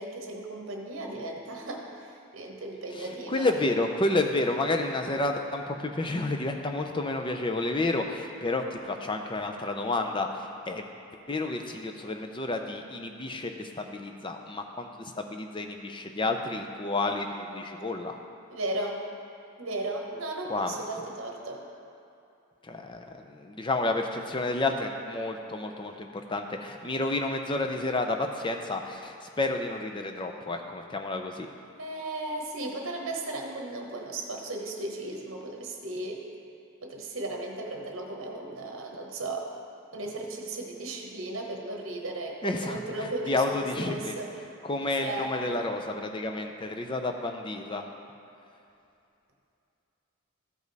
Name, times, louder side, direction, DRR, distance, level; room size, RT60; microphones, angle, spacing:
voice 1, 0.0-1.9 2.3-3.5 18.5-19.0 19.6-21.7 31.8-36.2 36.8-39.5 39.9-44.4 45.0-45.6, right 2 dB, 60° right, 1 dB, 1.1 m, -35 dB
voice 2, 2.9-10.9 11.3-18.2 20.5-21.1 22.6-31.5 42.4-44.2 44.6-47.9, left 2 dB, 20° left, 4 dB, 0.5 m, -30 dB
13.5 x 5.1 x 4.0 m, 2.7 s
head